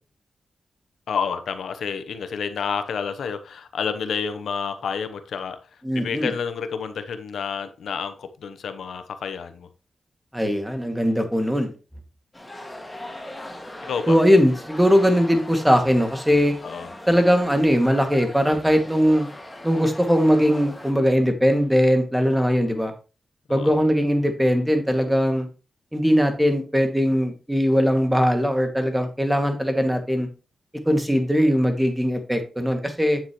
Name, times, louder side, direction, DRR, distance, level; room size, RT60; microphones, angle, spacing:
voice 1, 1.1-5.6 5.9-9.7 13.9-14.2 16.6-16.9 23.5-23.8, left 6 dB, 85° left, 10 dB, 0.9 m, -29 dB
voice 2, 5.8-6.3 10.3-11.7 14.1-16.5 17.1-19.3 19.6-22.9 23.5-25.5 25.9-30.3 30.9-33.2, equal, 5° right, 5 dB, 2.2 m, -20 dB
sound 1, 12.3-20.9, left 1 dB, 20° left, 2.1 m, -39 dB
9.3 x 7.3 x 3.1 m, 0.33 s
cardioid pair, 70°, 0 cm